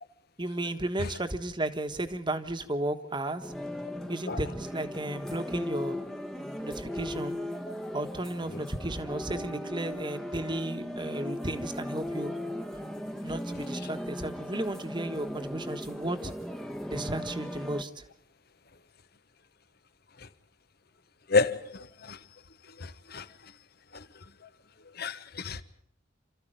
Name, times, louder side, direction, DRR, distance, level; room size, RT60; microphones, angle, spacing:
voice 1, 0.4-3.5 4.1-6.0 6.6-7.4 7.9-12.3 13.2-16.3 16.9-18.1, right 1 dB, 25° right, 1.4 m, -34 dB
sound 1, 3.4-17.8, left 1 dB, ahead, 1.2 m, -37 dB
voice 2, 21.3-22.2 22.8-23.3 23.9-24.0 25.0-25.6, left 4 dB, 50° left, 1.2 m, -29 dB
29.5 x 14.0 x 9.1 m
head